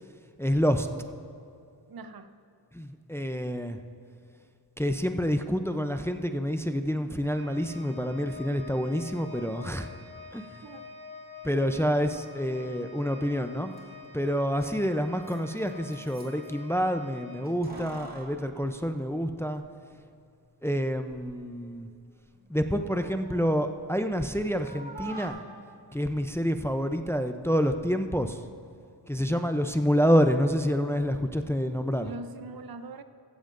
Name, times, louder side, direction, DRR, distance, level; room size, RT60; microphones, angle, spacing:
voice 1, 0.4-0.9 2.7-3.8 4.8-9.9 10.3-10.6 11.4-13.7 14.1-19.6 20.6-21.9 22.5-25.4 25.9-28.4 29.1-32.1, equal, 5° left, 7 dB, 0.5 m, -28 dB
voice 2, 1.9-2.3 10.6-10.9 17.7-18.1 32.0-33.0, right 3 dB, 60° right, 11 dB, 0.7 m, -42 dB
Organ, 7.2-18.1, left 4 dB, 25° left, 2.1 m, -47 dB
Keys jangling, 13.4-13.5 13.7-13.8 14.4-16.5 17.4-19.6 19.9-20.0 20.9-21.4 21.8-24.3 24.6-25.3, right 3 dB, 20° right, 1.8 m, -47 dB
15.0 x 14.5 x 2.6 m, 2.5 s
wide cardioid pair, 65°, 41 cm